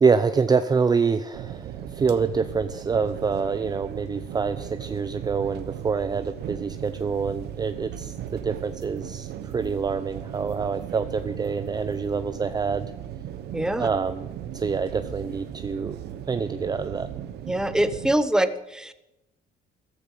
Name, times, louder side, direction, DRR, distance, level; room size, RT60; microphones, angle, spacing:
voice 1, 0.0-12.9 13.8-14.3 14.5-16.0 16.3-17.1, right 5 dB, 25° right, 10 dB, 0.6 m, -26 dB
sound 1, 1.3-18.2, right 10 dB, 75° right, 1.2 m, -37 dB
voice 2, 13.5-13.9 17.5-18.9, right 1 dB, 5° right, 11 dB, 1.0 m, -24 dB
14.5 x 13.5 x 5.6 m, 0.92 s
cardioid pair, 110°, 17 cm